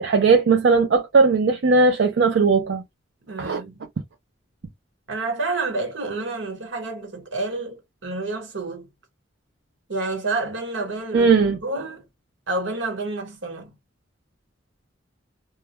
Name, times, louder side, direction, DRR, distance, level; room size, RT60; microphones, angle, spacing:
voice 1, 0.0-2.8 3.4-3.6 11.1-11.6, right 4 dB, 65° right, 0.4 m, -18 dB
voice 2, 3.3-3.8 5.1-8.9 9.9-12.0 12.5-13.7, right 3 dB, 80° right, 1.1 m, -29 dB
2.2 x 2.1 x 2.8 m
head